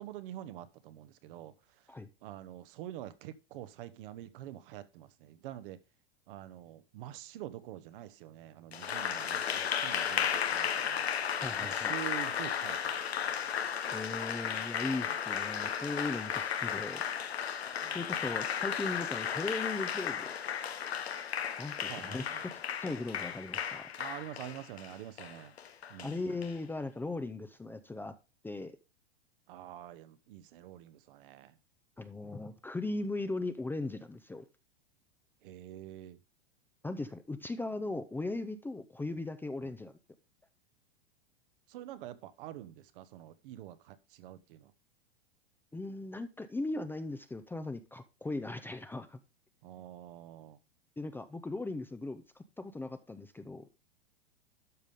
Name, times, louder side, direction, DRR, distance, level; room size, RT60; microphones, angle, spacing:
voice 1, 0.0-1.5 2.2-5.8 6.3-11.1 11.6-12.9 17.8-18.0 21.9-22.4 24.0-25.5 25.9-26.2 29.5-31.5 35.4-36.2 41.7-44.7 49.6-50.6, right 13 dB, 60° right, 1.0 m, -46 dB
Applause, 8.7-26.5, left 8 dB, 90° left, 1.1 m, -34 dB
voice 2, 11.4-11.9 13.9-17.0 17.9-20.3 21.6-22.5 22.8-23.9 26.0-28.1 28.4-28.7 32.0-34.5 36.8-40.0 45.7-49.2 51.0-53.7, left 2 dB, 5° left, 0.5 m, -38 dB
12.5 x 5.3 x 3.5 m
hypercardioid pair, 110°, 31 cm